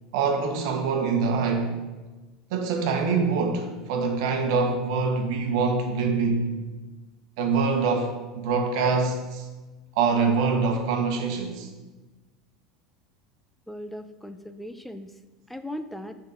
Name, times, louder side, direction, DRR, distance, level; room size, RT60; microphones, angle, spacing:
voice 1, 0.1-1.8 2.5-6.5 7.4-9.5 9.9-11.7, right 4 dB, 70° right, 3 dB, 1.2 m, -24 dB
voice 2, 13.7-15.1 15.5-16.2, left 1 dB, 5° left, 10 dB, 0.6 m, -38 dB
7.1 x 4.1 x 6.4 m, 1.2 s
hypercardioid pair, 85°, 3 cm